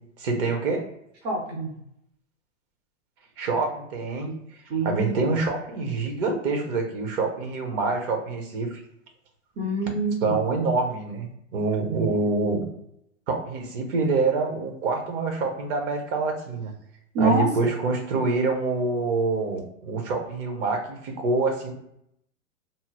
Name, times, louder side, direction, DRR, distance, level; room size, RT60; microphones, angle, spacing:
voice 1, 0.2-0.8 3.4-4.3 4.8-8.8 10.2-12.7 13.3-16.7 17.2-21.7, right 3 dB, 45° right, 3 dB, 0.8 m, -26 dB
voice 2, 1.2-1.7 4.7-5.2 9.6-10.3 17.1-17.7, right 2 dB, 15° right, -1 dB, 0.3 m, -25 dB
2.7 x 2.0 x 2.9 m, 0.75 s
hypercardioid pair, 115°, 38 cm